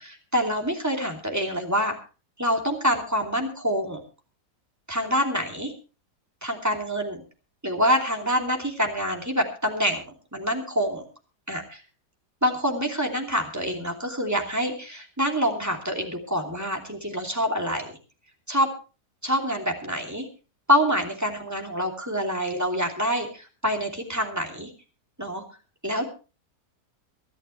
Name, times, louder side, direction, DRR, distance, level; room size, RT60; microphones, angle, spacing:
voice 1, 0.0-1.9 2.4-4.0 4.9-5.7 6.4-7.2 7.6-10.0 10.3-11.0 11.5-11.8 12.4-17.9 18.5-18.7 19.2-20.3 20.7-24.7 25.2-25.4 25.8-26.0, equal, 10° right, 2 dB, 2.8 m, -26 dB
24.0 x 11.0 x 3.2 m, 0.34 s
omnidirectional pair, 1.6 m